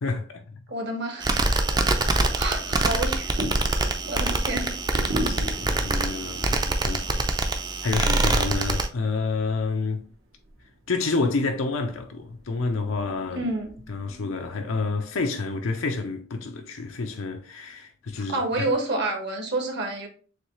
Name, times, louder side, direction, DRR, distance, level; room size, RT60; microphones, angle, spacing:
voice 1, 0.0-0.6 1.7-2.2 5.2-7.3 7.8-10.1 10.9-13.5 13.9-18.7, left 3 dB, 85° left, 0.6 m, -29 dB
voice 2, 0.7-1.6 2.0-3.4 4.1-4.9 13.3-13.8 18.1-20.1, right 2 dB, 60° right, 1.2 m, -29 dB
sound 1, 1.2-8.9, right 2 dB, 20° right, 0.4 m, -24 dB
sound 2, 2.4-14.5, equal, 80° right, 1.2 m, -39 dB
6.6 x 2.4 x 3.1 m
head